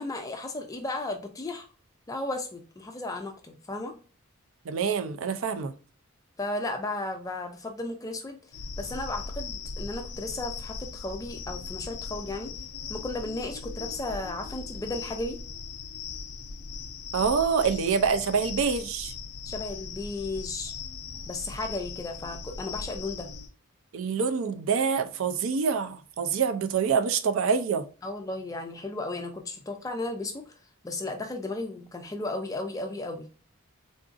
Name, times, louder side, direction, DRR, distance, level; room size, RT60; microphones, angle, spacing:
voice 1, 0.0-1.7 2.1-3.9 6.4-8.4 8.8-12.5 12.9-15.4 19.5-20.7 21.3-23.3 28.0-30.6 30.8-33.3, left 2 dB, 15° left, 0.3 m, -34 dB
voice 2, 4.7-5.7 17.1-19.1 23.9-27.8, right 6 dB, 65° right, 0.4 m, -26 dB
sound 1, 8.5-23.5, left 4 dB, 85° left, 0.5 m, -39 dB
3.7 x 2.5 x 2.4 m
head